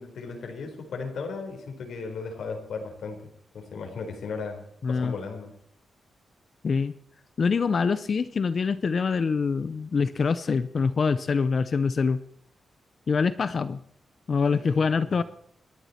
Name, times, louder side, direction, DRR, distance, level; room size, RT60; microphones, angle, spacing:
voice 1, 0.0-3.2 3.5-4.6 4.9-5.5 14.5-15.2, left 4 dB, 80° left, 3 dB, 4.2 m, -36 dB
voice 2, 4.8-5.1 6.6-6.9 7.4-12.2 13.1-13.8 14.3-15.2, left 5 dB, 45° left, 14 dB, 0.7 m, -25 dB
28.5 x 11.5 x 4.3 m, 0.65 s
wide cardioid pair, 145°, 0 cm